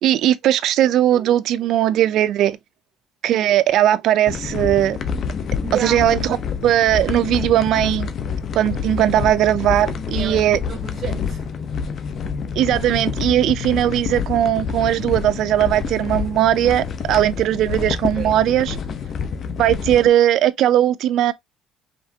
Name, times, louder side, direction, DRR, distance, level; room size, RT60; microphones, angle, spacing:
voice 1, 0.0-2.6 3.2-5.0 5.8-6.4 6.6-8.1 8.5-10.6 12.6-18.8 19.6-21.3, right 12 dB, 65° right, 0.5 m, -18 dB
sound 1, 4.3-20.1, left 6 dB, 45° left, 0.8 m, -27 dB
voice 2, 5.6-6.1 10.1-11.7 18.2-18.4, right 7 dB, 40° right, 1.2 m, -32 dB
5.2 x 3.2 x 2.7 m
cardioid pair, 120°, 0 cm